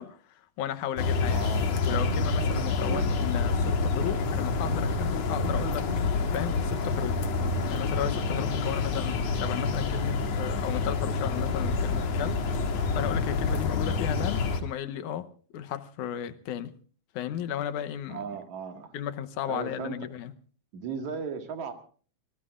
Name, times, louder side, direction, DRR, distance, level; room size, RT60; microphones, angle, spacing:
voice 1, 0.0-1.5 1.9-5.9 6.3-7.2 7.7-16.7 17.1-18.2 18.9-20.3, left 10 dB, 80° left, 2.4 m, -34 dB
sound 1, 1.0-14.6, left 4 dB, 60° left, 2.6 m, -27 dB
voice 2, 1.3-1.7 2.8-3.1 18.1-18.9 19.5-20.1 20.7-21.7, right 6 dB, 70° right, 3.3 m, -36 dB
26.0 x 19.0 x 2.5 m
omnidirectional pair, 3.5 m